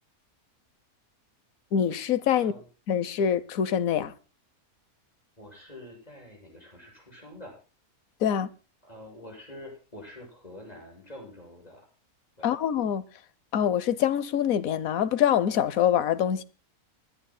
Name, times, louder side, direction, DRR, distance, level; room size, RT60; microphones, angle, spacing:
voice 1, 1.7-2.5 2.9-4.1 8.2-8.5 12.4-13.0 13.5-16.4, left 9 dB, 70° left, 1.3 m, -25 dB
voice 2, 5.4-7.6 8.8-11.9 12.4-12.6, left 1 dB, 25° left, 7.4 m, -46 dB
28.0 x 11.5 x 2.2 m
omnidirectional pair, 1.5 m